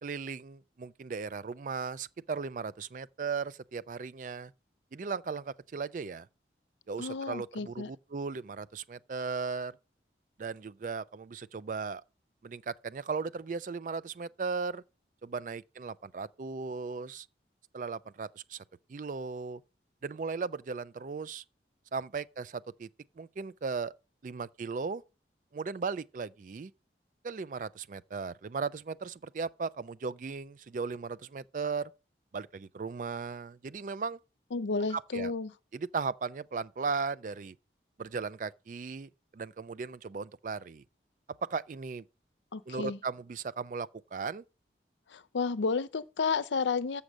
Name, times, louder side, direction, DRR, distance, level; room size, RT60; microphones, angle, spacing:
voice 1, 0.0-4.5 4.9-6.3 6.9-9.8 10.4-12.0 12.4-14.8 15.2-17.3 17.7-18.6 18.9-19.6 20.0-21.4 21.9-22.9 23.2-23.9 24.2-25.0 25.5-26.7 27.2-31.9 32.3-34.2 34.9-35.3 35.7-37.5 38.0-40.8 41.5-42.0 42.7-44.4, right 5 dB, 45° right, 0.4 m, -37 dB
voice 2, 7.0-7.9 34.5-35.5 42.5-43.0 45.1-47.0, left 4 dB, 85° left, 0.5 m, -32 dB
7.0 x 6.5 x 6.2 m
head